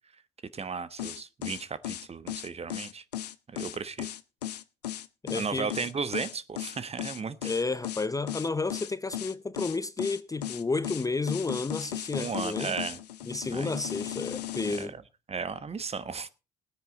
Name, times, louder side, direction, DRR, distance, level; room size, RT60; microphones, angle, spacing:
voice 1, 0.5-3.0 3.5-4.1 5.3-7.5 12.2-13.0 13.4-13.8 14.8-14.9 15.3-16.3, right 5 dB, 30° right, 1.1 m, -35 dB
sound 1, 1.0-14.9, left 12 dB, 85° left, 0.6 m, -36 dB
voice 2, 5.2-5.7 7.4-12.8 13.2-14.9, left 3 dB, 15° left, 0.7 m, -31 dB
17.5 x 9.3 x 3.9 m
hypercardioid pair, 50°, 20 cm